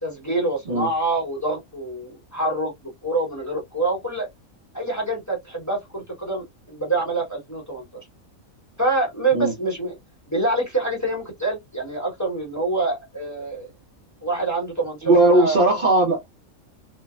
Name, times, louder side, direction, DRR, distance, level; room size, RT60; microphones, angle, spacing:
voice 1, 0.0-4.3 4.7-7.8 8.8-10.0 10.3-13.7 14.2-15.6, right 2 dB, 15° left, 0.9 m, -26 dB
voice 2, 15.0-16.3, right 2 dB, 50° right, 0.7 m, -18 dB
3.2 x 2.1 x 2.3 m
omnidirectional pair, 1.4 m